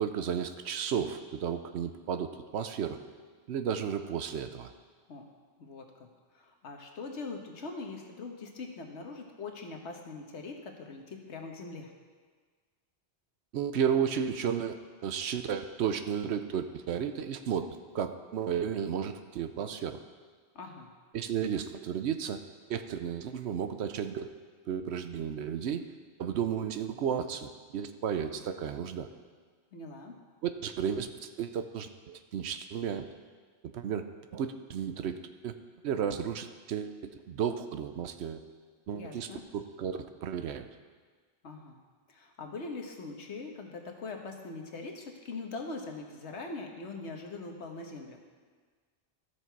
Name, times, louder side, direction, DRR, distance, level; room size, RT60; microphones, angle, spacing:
voice 1, 0.0-3.0 3.5-4.7 13.5-17.7 17.9-20.0 21.1-22.4 22.7-24.3 24.7-25.8 26.2-29.1 30.4-33.1 33.6-35.5 35.8-38.4 38.9-39.3 39.5-40.7, right 8 dB, 80° right, 9 dB, 0.9 m, -33 dB
voice 2, 5.6-11.9 20.5-20.9 29.7-30.1 38.9-39.4 41.4-41.8 42.1-48.2, left 3 dB, 85° left, 2 dB, 1.4 m, -42 dB
13.5 x 6.5 x 4.6 m, 1.5 s
omnidirectional pair, 1.1 m